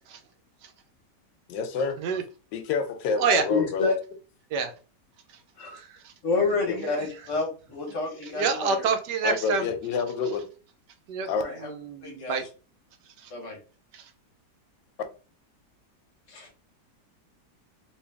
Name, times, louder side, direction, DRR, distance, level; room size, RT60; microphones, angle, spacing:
voice 1, 1.5-2.0 2.5-3.9 6.7-6.8 9.2-10.5 11.3-11.4, left 5 dB, 80° left, 1.3 m, -28 dB
voice 2, 3.5-3.9 5.6-5.8 6.2-8.9 11.2-11.7 12.0-12.5 13.3-13.6 16.3-16.5, left 4 dB, 50° left, 1.2 m, -29 dB
voice 3, 5.7-6.1 6.8-6.9 8.4-9.6 11.1-11.3 11.7-12.5 13.2-13.3 13.9-14.0, right 5 dB, 75° right, 1.2 m, -27 dB
3.2 x 2.8 x 3.3 m
omnidirectional pair, 1.9 m